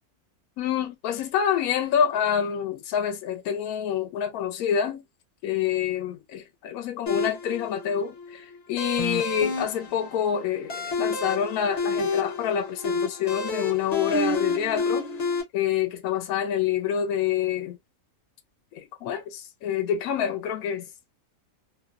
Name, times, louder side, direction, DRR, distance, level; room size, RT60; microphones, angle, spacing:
voice 1, 0.6-5.0 5.4-15.1 15.5-17.8 18.7-20.9, left 9 dB, 75° left, 1.0 m, -27 dB
sound 1, 7.1-15.4, left 3 dB, 40° left, 0.6 m, -30 dB
2.8 x 2.0 x 2.3 m
omnidirectional pair, 1.6 m